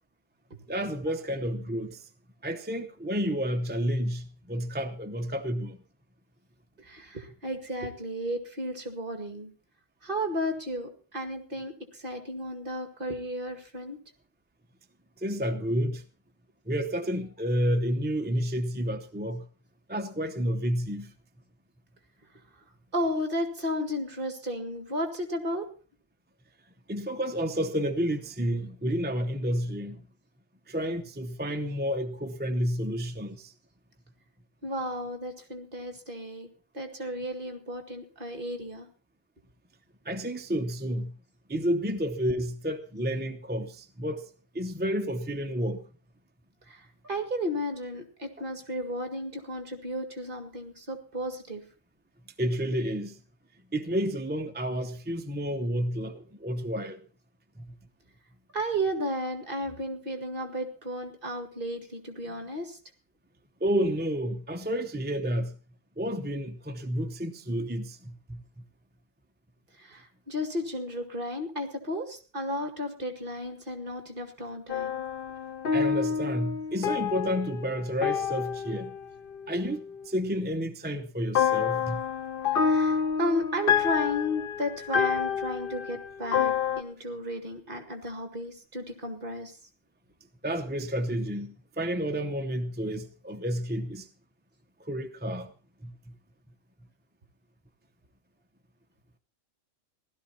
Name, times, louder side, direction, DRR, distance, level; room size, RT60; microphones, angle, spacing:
voice 1, 0.7-2.1 2.4-5.8 15.2-16.0 16.7-19.4 19.9-21.1 26.9-30.0 30.7-33.5 40.1-41.1 41.5-44.3 44.5-45.8 52.4-53.2 53.7-57.0 57.6-57.7 63.6-65.5 66.0-68.4 75.7-79.0 79.5-82.0 90.4-94.1 94.9-95.5 95.8-95.9, equal, 10° right, 0.6 m, -30 dB
voice 2, 6.8-9.5 10.0-14.0 22.9-25.6 34.6-36.5 36.7-38.9 46.7-51.6 58.5-62.8 69.8-75.0 82.5-89.6, equal, 40° right, 2.3 m, -33 dB
sound 1, 74.7-80.1 81.4-86.8, left 7 dB, 50° left, 0.9 m, -28 dB
16.0 x 12.5 x 4.3 m
omnidirectional pair, 1.3 m